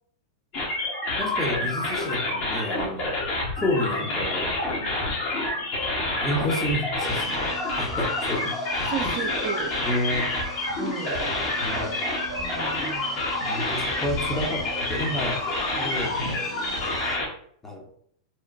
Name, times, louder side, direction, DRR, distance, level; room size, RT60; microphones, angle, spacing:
sound 1, 0.5-17.3, left 2 dB, 45° left, 1.0 m, -28 dB
voice 1, 1.2-3.2 3.6-4.6 6.2-7.3 7.8-8.4 9.0-9.3 9.8-10.3 11.6-12.0 13.5-15.4 15.8-16.2 17.6-17.9, left 1 dB, 10° left, 0 dB, 0.7 m, -30 dB
sound 2, 7.0-17.2, equal, 80° left, 1.2 m, -40 dB
voice 2, 8.8-9.7 10.8-11.2 12.4-13.3, right 7 dB, 45° right, 5 dB, 0.5 m, -34 dB
2.9 x 2.1 x 2.6 m, 0.65 s
hypercardioid pair, 100°, 3 cm